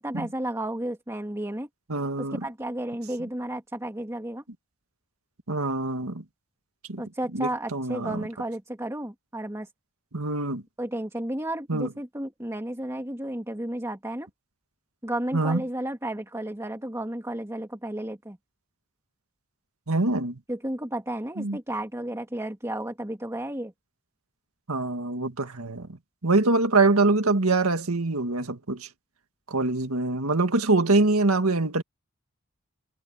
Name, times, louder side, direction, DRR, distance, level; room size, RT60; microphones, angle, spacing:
voice 1, 0.0-1.7 2.2-4.4 7.0-9.7 10.8-14.3 15.0-18.4 20.5-23.7, right 1 dB, 15° right, 2.4 m, -32 dB
voice 2, 1.9-2.4 5.5-6.2 6.9-7.0 7.3-8.3 10.1-10.6 11.7-11.9 15.3-15.6 19.9-20.4 21.4-21.6 24.7-25.9 26.2-28.9 29.5-31.8, right 3 dB, 90° right, 1.9 m, -24 dB
head